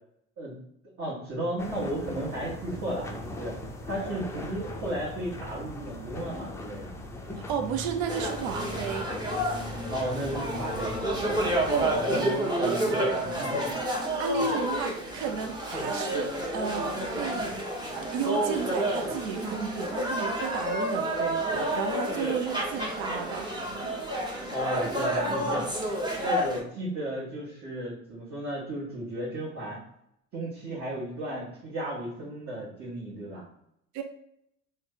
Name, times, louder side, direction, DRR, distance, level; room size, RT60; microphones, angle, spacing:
voice 1, 1.0-3.5 3.8-6.9 9.9-11.0 11.9-13.7 24.5-25.7 26.2-29.8 30.3-33.4, right 1 dB, 40° right, -7 dB, 1.3 m, -34 dB
sound 1, 1.6-12.0, left 1 dB, 10° left, 0.4 m, -39 dB
voice 2, 7.4-9.1 11.7-12.0 14.2-17.6 18.1-23.5 33.9-34.0, right 6 dB, 60° right, 5 dB, 0.5 m, -33 dB
sound 2, 8.1-26.6, right 1 dB, 10° right, 1.0 m, -30 dB
3.0 x 2.2 x 3.7 m, 0.73 s
figure-of-eight pair, 60°, 37 cm